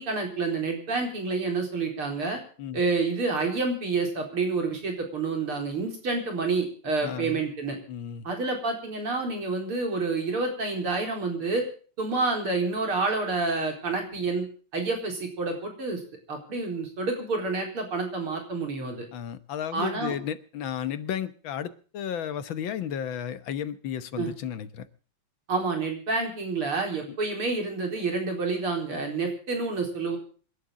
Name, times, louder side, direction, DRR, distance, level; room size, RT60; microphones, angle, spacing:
voice 1, 0.0-2.4 2.7-7.8 8.2-11.7 12.0-14.5 14.7-16.0 16.3-19.1 19.7-20.1 24.2-24.3 25.5-30.2, right 3 dB, 80° right, 2 dB, 5.1 m, -28 dB
voice 2, 7.0-7.4 7.9-8.3 19.1-24.9 27.1-27.2, left 9 dB, 65° left, 13 dB, 1.8 m, -33 dB
27.0 x 11.5 x 3.8 m, 0.40 s
omnidirectional pair, 2.4 m